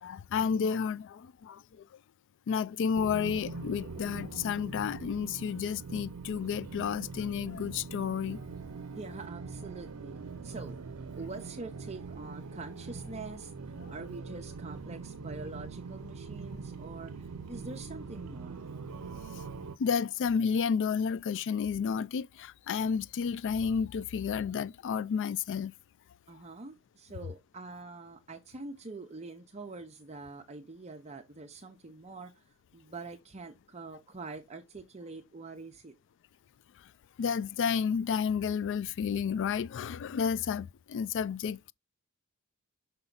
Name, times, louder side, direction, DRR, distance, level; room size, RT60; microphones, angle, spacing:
voice 1, 0.0-1.9 2.5-8.4 13.8-13.9 19.8-25.7 37.2-41.7, left 6 dB, 60° left, 0.3 m, -31 dB
sound 1, 2.9-19.8, right 4 dB, 85° right, 0.6 m, -43 dB
voice 2, 8.9-10.2 10.4-10.8 11.2-18.6 26.3-35.9, right 3 dB, 30° right, 0.7 m, -45 dB
5.9 x 5.6 x 3.8 m
head